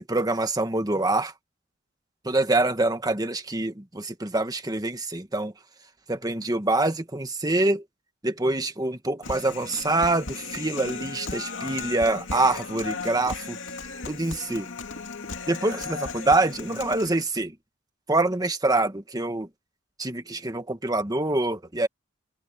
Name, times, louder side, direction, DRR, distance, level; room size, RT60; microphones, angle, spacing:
voice 1, 0.0-1.3 2.2-5.5 6.1-7.8 8.2-13.6 14.1-14.7 15.5-17.5 18.1-19.5 20.0-21.9, right 2 dB, 20° right, 1.5 m, -25 dB
Human voice, 9.2-17.2, left 4 dB, 65° left, 2.6 m, -36 dB
head